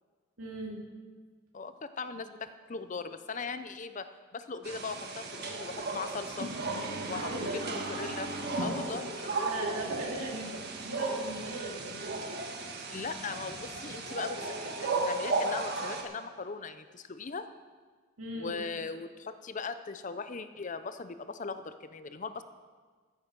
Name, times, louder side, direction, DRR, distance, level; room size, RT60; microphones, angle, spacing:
voice 1, 0.4-0.8 7.0-7.6 9.5-12.0 18.2-18.6, right 2 dB, 75° right, -1 dB, 2.9 m, -39 dB
voice 2, 1.5-6.5 7.1-8.3 8.6-9.5 12.9-17.5 18.3-22.4, left 4 dB, 35° left, 11 dB, 0.6 m, -39 dB
sound 1, 4.6-16.0, right 3 dB, 50° right, 1.5 m, -35 dB
14.0 x 9.6 x 5.9 m, 1.5 s
head